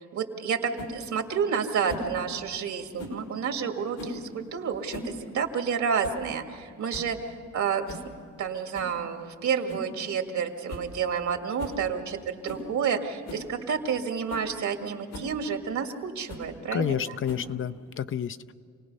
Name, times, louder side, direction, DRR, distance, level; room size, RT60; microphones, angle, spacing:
voice 1, 0.1-7.2 7.5-8.0 8.4-12.2 12.4-17.2, right 6 dB, 70° right, 4 dB, 2.1 m, -30 dB
sound 1, 0.7-0.9 1.9-2.1 3.0-3.2 3.9-4.2 4.7-5.2 5.4-5.5 6.0-6.2 6.6-6.7 6.9-7.2 7.9-8.1 8.7-8.9 9.7-9.9 10.3-10.4 10.7-10.9 11.2-11.3 11.6-11.8 12.4-12.7 13.2-13.5 14.0-14.1 14.3-14.5 15.1-15.3 16.3-16.5 17.2-17.6, left 1 dB, 90° left, 5.3 m, -39 dB
voice 2, 16.7-18.5, left 8 dB, 45° left, 13 dB, 0.7 m, -30 dB
27.5 x 19.0 x 5.5 m, 2.2 s
cardioid pair, 90°, 30 cm